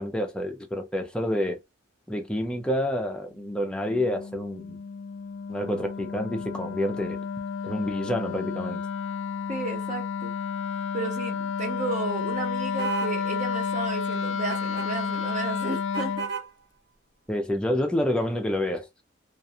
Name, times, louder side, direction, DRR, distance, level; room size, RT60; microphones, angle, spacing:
voice 1, 0.0-1.6 2.1-4.8 5.5-7.2 7.6-8.8 17.3-18.9, left 1 dB, 5° left, 0.5 m, -28 dB
Wind instrument woodwind instrument, 3.4-16.3, left 6 dB, 65° left, 0.3 m, -31 dB
voice 2, 9.5-10.3 10.9-16.2, right 3 dB, 35° right, 0.7 m, -33 dB
sound 1, 12.8-13.2 14.5-14.9 15.9-16.5, right 6 dB, 55° right, 1.0 m, -32 dB
2.5 x 2.2 x 2.7 m
head